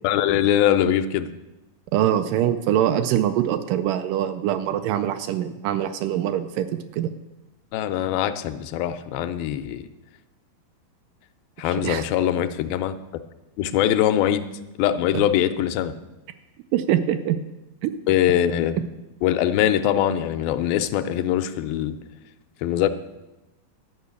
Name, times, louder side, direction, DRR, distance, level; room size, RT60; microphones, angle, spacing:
voice 1, 0.0-1.3 7.7-9.9 11.6-13.0 13.6-14.5 14.8-15.9 18.1-18.8 19.2-22.0 22.6-22.9, left 11 dB, 85° left, 10 dB, 2.4 m, -22 dB
voice 2, 1.9-7.1 11.6-12.0 15.1-15.2 16.7-17.4 17.8-17.9, right 11 dB, 80° right, 9 dB, 2.0 m, -23 dB
11.5 x 5.6 x 8.2 m, 1.0 s
omnidirectional pair, 4.1 m